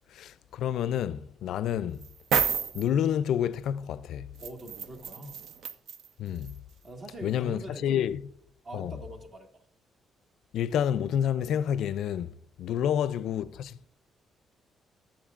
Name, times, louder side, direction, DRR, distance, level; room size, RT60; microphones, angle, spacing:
voice 1, 0.1-2.1 2.7-4.3 6.2-6.5 7.2-8.2 8.7-9.0 10.5-13.9, left 9 dB, 75° left, 0.4 m, -29 dB
sound 1, 2.0-2.8 4.4-6.1 6.5-6.6, right 7 dB, 75° right, 0.6 m, -30 dB
voice 2, 4.4-5.4 6.8-8.1 8.6-9.5 12.7-12.9, right 1 dB, 50° right, 1.8 m, -43 dB
21.0 x 7.4 x 2.5 m
cardioid pair, 90°, 0 cm